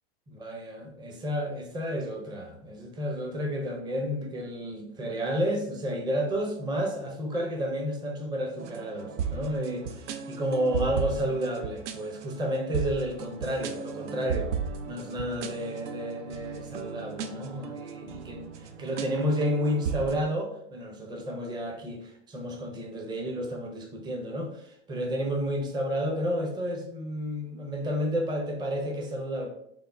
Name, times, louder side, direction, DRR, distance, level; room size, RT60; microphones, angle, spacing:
voice 1, 0.3-14.5 14.8-29.5, equal, 10° right, 2 dB, 0.5 m, -31 dB
sound 1, 8.6-20.2, right 6 dB, 80° right, 0.5 m, -36 dB
3.5 x 2.2 x 3.4 m, 0.73 s
hypercardioid pair, 115°, 35 cm